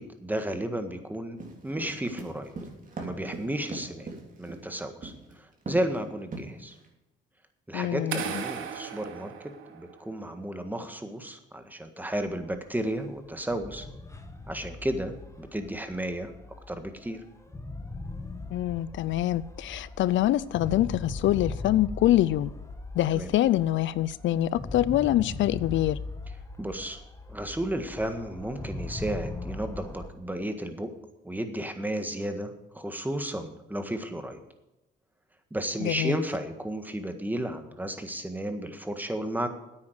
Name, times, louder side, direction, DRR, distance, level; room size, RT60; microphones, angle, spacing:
voice 1, 0.0-2.5 3.0-4.1 4.4-6.8 7.7-13.9 14.5-16.3 16.7-17.2 23.1-23.3 26.6-27.0 27.3-30.9 31.2-34.4 35.5-39.5, right 1 dB, 10° right, 1.6 m, -33 dB
sound 1, 1.4-4.6 5.0-5.3 5.7-6.0 6.3-6.9, right 3 dB, 40° right, 3.3 m, -38 dB
voice 2, 7.7-8.4 18.5-22.5 22.9-26.0 35.8-36.2, left 13 dB, 70° left, 0.4 m, -25 dB
sound 2, 8.1-10.2, right 8 dB, 85° right, 1.3 m, -36 dB
sound 3, 12.1-30.1, left 2 dB, 15° left, 1.5 m, -40 dB
9.7 x 8.7 x 8.0 m
cardioid pair, 90°, 20 cm